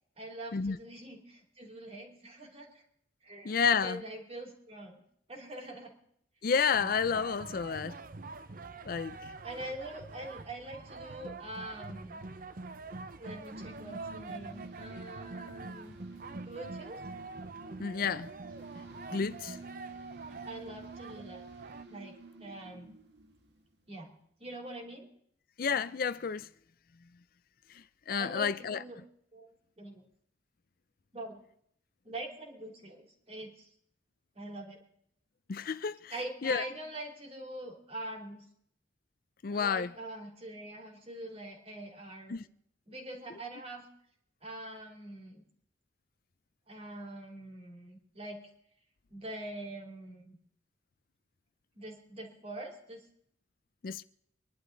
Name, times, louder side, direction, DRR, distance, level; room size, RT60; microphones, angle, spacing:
voice 1, 0.2-2.7 3.2-5.0 5.3-6.0 9.4-12.2 13.2-15.9 16.4-17.0 20.4-21.4 21.8-22.9 23.9-24.1 24.4-25.1 28.2-29.0 29.3-30.1 31.1-31.4 32.0-33.7 34.3-34.8 36.1-38.5 39.5-42.4 42.9-43.9 44.4-45.4 46.7-48.4 49.1-50.4 51.7-53.0, right 1 dB, 35° right, 3.1 m, -44 dB
voice 2, 3.4-4.0 6.4-8.0 8.8-9.3 17.8-18.3 19.1-19.6 25.6-26.5 27.7-28.8 35.5-36.1 36.4-36.6 39.4-39.9 42.3-42.4 53.8-54.0, left 6 dB, 55° left, 0.5 m, -30 dB
sound 1, 6.7-21.8, right 3 dB, 50° right, 0.7 m, -45 dB
sound 2, 13.4-23.7, right 3 dB, 75° right, 1.7 m, -50 dB
24.5 x 11.5 x 3.9 m
head